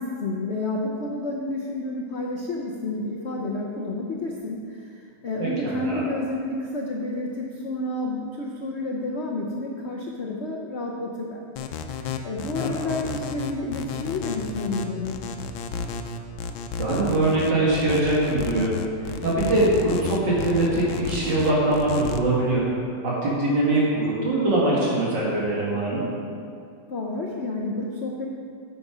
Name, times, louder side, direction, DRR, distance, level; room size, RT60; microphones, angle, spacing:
voice 1, 0.0-11.5 11.9-12.0 12.2-15.2 26.9-28.3, left 2 dB, 65° left, -1 dB, 0.6 m, -30 dB
voice 2, 5.4-6.0 12.6-12.9 16.8-18.7 19.0-22.6 23.0-26.0, right 2 dB, 65° right, -6 dB, 2.4 m, -22 dB
sound 1, 11.6-22.2, left 6 dB, 90° left, 1.4 m, -32 dB
9.2 x 6.8 x 4.9 m, 2.4 s
omnidirectional pair, 2.1 m